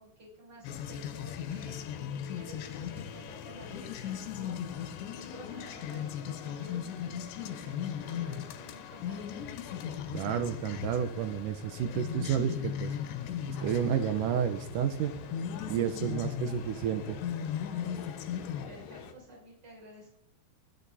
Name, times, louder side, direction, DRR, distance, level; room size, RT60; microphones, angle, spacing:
voice 1, 0.0-1.8 2.3-4.6 5.1-9.4 18.7-20.2, right 1 dB, 25° right, -4 dB, 7.1 m, -51 dB
sound 1, 0.6-18.7, left 9 dB, 80° left, 3.3 m, -38 dB
sound 2, 2.2-14.4, left 5 dB, 50° right, 5.5 m, -56 dB
voice 2, 10.1-12.9 13.5-15.1 15.7-17.2, right 8 dB, 85° right, 9 dB, 1.9 m, -31 dB
sound 3, 13.6-19.1, left 6 dB, 60° left, 2.7 m, -48 dB
20.0 x 10.0 x 4.2 m, 0.64 s
omnidirectional pair, 5.1 m